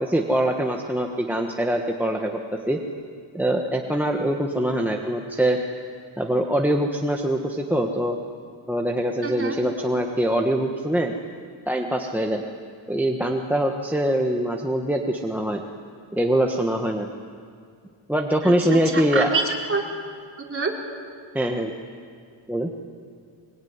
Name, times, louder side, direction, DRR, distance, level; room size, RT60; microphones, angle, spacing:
voice 1, 0.0-2.4 2.7-2.8 3.3-5.6 6.2-8.2 8.7-11.1 11.7-12.4 12.9-15.6 16.1-17.1 18.1-19.3 21.3-21.7 22.5-22.7, right 1 dB, 5° right, 1 dB, 1.5 m, -23 dB
voice 2, 9.2-9.6 18.4-19.8 20.4-20.7, right 4 dB, 25° right, -1 dB, 4.2 m, -27 dB
23.5 x 23.5 x 9.7 m, 2.1 s
cardioid pair, 125°, 48 cm